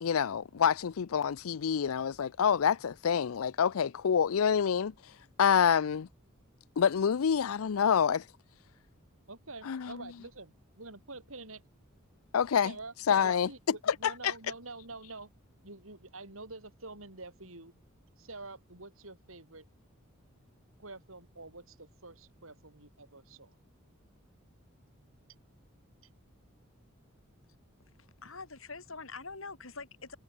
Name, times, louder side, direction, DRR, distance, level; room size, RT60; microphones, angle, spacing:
voice 1, 0.0-4.9 5.4-6.1 6.8-8.2 9.7-10.0 12.3-12.7 13.1-13.5 14.0-14.1, left 7 dB, 90° left, 0.5 m, -27 dB
voice 2, 9.3-11.6 12.6-12.9 13.2-15.3 15.6-17.7 18.2-19.7 20.8-23.5, right 3 dB, 75° right, 7.7 m, -47 dB
voice 3, 27.9-30.2, left 4 dB, 70° left, 4.0 m, -45 dB
head